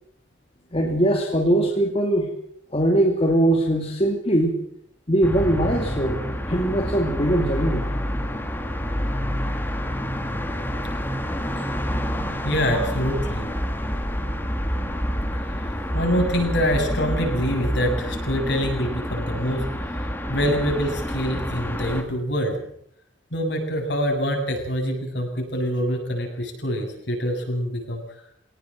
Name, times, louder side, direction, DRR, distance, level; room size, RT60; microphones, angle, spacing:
voice 1, 0.7-2.3 2.7-4.6 5.1-7.8, right 1 dB, 30° left, 2 dB, 2.4 m, -21 dB
sound 1, 5.2-22.0, equal, 10° left, 2.5 m, -28 dB
voice 2, 12.4-13.5 15.3-19.7 20.3-22.6 23.3-28.0, equal, 60° left, 2 dB, 7.6 m, -25 dB
25.0 x 18.5 x 7.7 m, 0.70 s
head